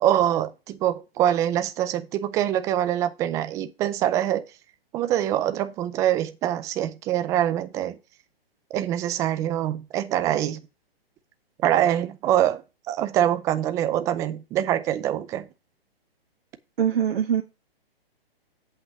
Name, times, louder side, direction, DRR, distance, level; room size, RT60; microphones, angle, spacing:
voice 1, 0.0-4.4 4.9-8.0 8.7-10.6 11.6-12.6 12.9-15.5, right 11 dB, 10° right, 0.4 m, -24 dB
voice 2, 16.8-17.4, right 9 dB, 70° right, 1.3 m, -22 dB
8.1 x 5.2 x 5.7 m
hypercardioid pair, 135°, 30 cm